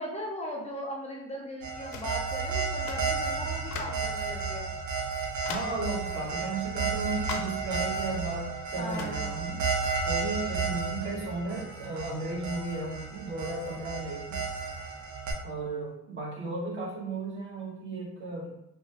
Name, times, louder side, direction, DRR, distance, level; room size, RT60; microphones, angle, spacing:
voice 1, 0.0-4.7 8.8-9.3, equal, 20° left, -2 dB, 0.5 m, -38 dB
sound 1, 1.6-15.3, right 5 dB, 75° right, 0.8 m, -33 dB
sound 2, 1.9-2.2 2.9-3.1 3.7-4.1 4.7-4.8 5.5-5.8 7.3-7.6 8.9-9.2, left 6 dB, 80° left, 0.5 m, -39 dB
voice 2, 5.4-9.7 10.0-14.5 15.4-18.6, right 2 dB, 40° right, -3 dB, 1.0 m, -35 dB
2.9 x 2.2 x 2.8 m, 0.85 s
cardioid pair, 90°, 30 cm